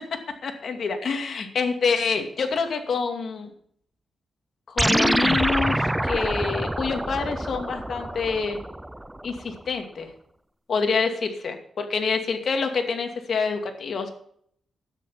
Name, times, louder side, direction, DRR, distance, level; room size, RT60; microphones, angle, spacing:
voice 1, 0.4-3.5 4.7-8.6 9.2-10.1 10.7-14.1, left 5 dB, 60° left, 5 dB, 2.4 m, -27 dB
sound 1, 4.8-9.4, right 1 dB, 10° right, 0.4 m, -26 dB
12.5 x 9.8 x 5.8 m, 0.65 s
cardioid pair, 100°, 0 cm